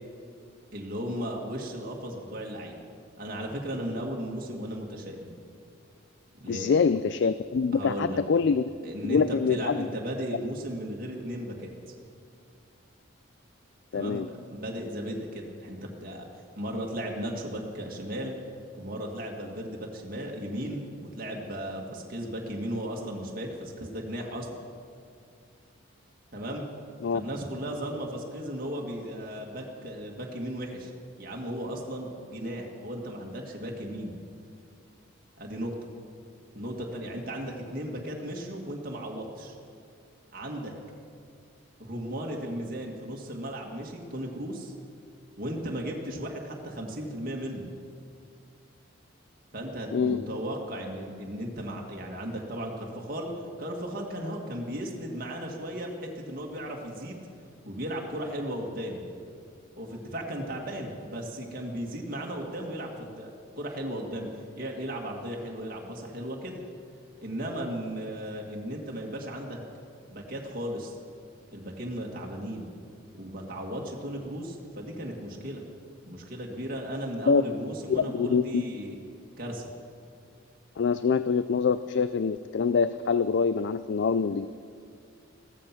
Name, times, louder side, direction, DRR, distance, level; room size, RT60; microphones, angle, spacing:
voice 1, 0.7-2.8 3.2-5.3 6.4-6.8 7.7-8.2 8.8-11.9 13.9-16.3 16.6-18.4 18.8-24.6 26.3-26.7 27.1-30.9 31.2-34.2 35.4-35.7 36.5-39.6 40.3-40.7 41.8-44.7 45.4-47.7 49.5-53.3 53.6-57.2 57.6-59.0 59.8-63.3 63.6-64.3 64.6-66.6 67.2-69.6 70.1-71.0 71.5-72.7 73.1-75.6 76.1-79.0 79.4-79.7, equal, 45° right, -1 dB, 1.9 m, -36 dB
voice 2, 6.5-8.6 9.0-9.9 13.9-14.3 27.0-27.2 49.9-50.2 77.3-77.4 77.9-78.6 80.8-84.5, left 5 dB, 55° left, 13 dB, 0.3 m, -25 dB
15.5 x 14.0 x 5.9 m, 2.2 s
head